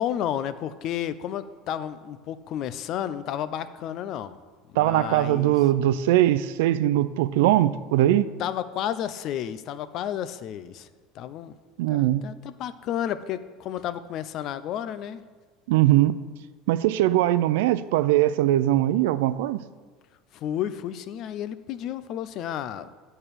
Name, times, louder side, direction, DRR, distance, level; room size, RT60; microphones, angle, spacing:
voice 1, 0.0-4.4 4.7-5.5 8.4-10.9 11.1-11.5 11.9-15.2 20.3-22.9, left 10 dB, 50° left, 0.5 m, -31 dB
voice 2, 4.8-8.3 11.8-12.2 15.7-16.1 16.7-19.6, right 14 dB, 85° right, 0.4 m, -21 dB
8.9 x 4.4 x 6.7 m
supercardioid pair, 120°, 0 cm